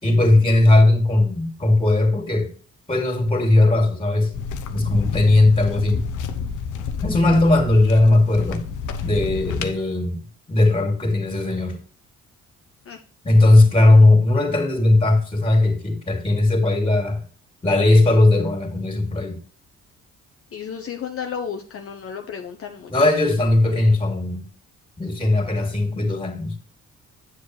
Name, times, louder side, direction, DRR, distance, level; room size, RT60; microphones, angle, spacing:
voice 1, 0.0-2.5 2.9-4.3 4.7-6.1 7.0-8.6 9.0-10.2 10.5-11.8 13.2-17.2 17.6-19.4 22.9-24.4 25.0-26.6, left 2 dB, 20° left, 2.7 m, -18 dB
sound 1, 4.3-9.7, left 6 dB, 80° left, 1.0 m, -29 dB
voice 2, 20.5-22.9, left 7 dB, 50° left, 1.0 m, -32 dB
8.7 x 7.2 x 3.3 m
cardioid pair, 90°, 30 cm